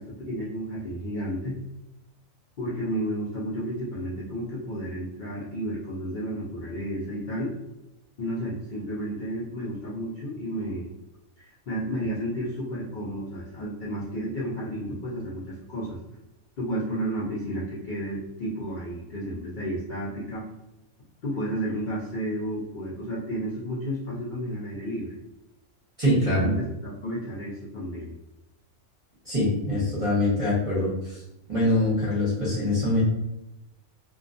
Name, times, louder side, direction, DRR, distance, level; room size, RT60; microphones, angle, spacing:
voice 1, 0.0-1.6 2.6-7.5 8.2-10.9 11.4-16.0 16.6-20.5 21.2-25.2 26.2-28.1, equal, 55° left, -8 dB, 0.5 m, -32 dB
voice 2, 26.0-26.5 29.3-31.2 31.5-33.0, left 1 dB, 30° right, -9 dB, 0.7 m, -24 dB
2.3 x 2.3 x 2.5 m, 0.93 s
omnidirectional pair, 1.5 m